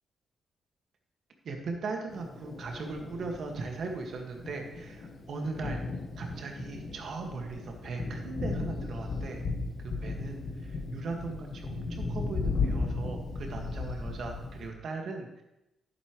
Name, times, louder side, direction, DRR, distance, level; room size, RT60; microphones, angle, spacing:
voice 1, 1.4-5.8 6.2-9.4 9.8-15.4, right 3 dB, 65° right, 2 dB, 1.9 m, -38 dB
Thunder, 2.1-14.7, left 3 dB, 60° left, 1.8 m, -36 dB
11.0 x 9.9 x 3.2 m, 0.90 s
supercardioid pair, 50°, 0 cm